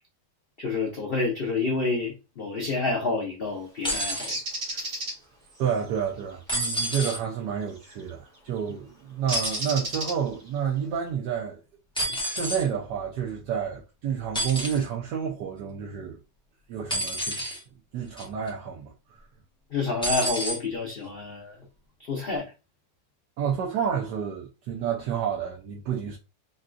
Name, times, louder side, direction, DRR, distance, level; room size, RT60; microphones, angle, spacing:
voice 1, 0.6-4.4 4.7-5.0 19.7-21.6 22.0-22.5, left 3 dB, 65° left, 0.5 m, -29 dB
sound 1, 3.8-4.3 6.5-7.2 9.3-9.7 12.0-12.7 14.3-14.8 16.9-17.6 18.2-18.5 20.0-20.6 21.6-21.7, right 1 dB, 5° left, 0.5 m, -29 dB
Bird, 4.3-5.1 7.8-8.0 9.3-10.5, right 1 dB, 50° right, 1.1 m, -31 dB
voice 2, 5.6-11.6 12.1-16.2 16.7-17.4 17.9-18.9 23.4-26.2, right 8 dB, 70° right, 1.2 m, -30 dB
3.9 x 2.3 x 2.5 m
omnidirectional pair, 1.9 m